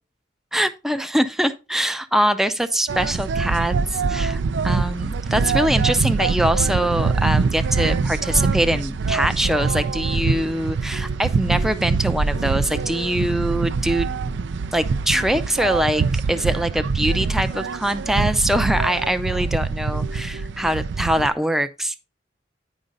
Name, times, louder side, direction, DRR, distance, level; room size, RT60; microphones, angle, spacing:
voice 1, 0.5-14.1 14.7-22.0, right 1 dB, ahead, 0.4 m, -23 dB
sound 1, 2.9-21.3, right 4 dB, 85° right, 0.4 m, -24 dB
9.7 x 5.1 x 3.9 m
head